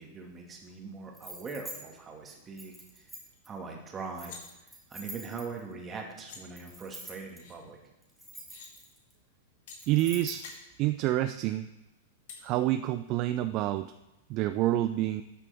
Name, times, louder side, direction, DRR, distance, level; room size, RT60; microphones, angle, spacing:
voice 1, 0.0-3.1 3.5-4.4 4.9-7.8, right 4 dB, 20° right, 1 dB, 2.0 m, -41 dB
sound 1, 1.1-1.8 2.6-3.5 4.1-5.7 6.6-7.4 8.0-9.1 9.8-10.6, right 1 dB, ahead, 2.2 m, -45 dB
sound 2, 3.3-3.4 3.8-4.4 5.8-5.9 6.2-6.4 7.4-7.6 8.3-8.7 9.7-9.8 10.2-10.6 12.3-12.4, left 6 dB, 65° left, 2.2 m, -48 dB
voice 2, 9.9-10.4 10.8-11.7 12.4-13.9 14.3-15.2, right 14 dB, 45° right, 11 dB, 0.4 m, -28 dB
12.0 x 6.9 x 3.5 m, 1.0 s
hypercardioid pair, 125°, 0 cm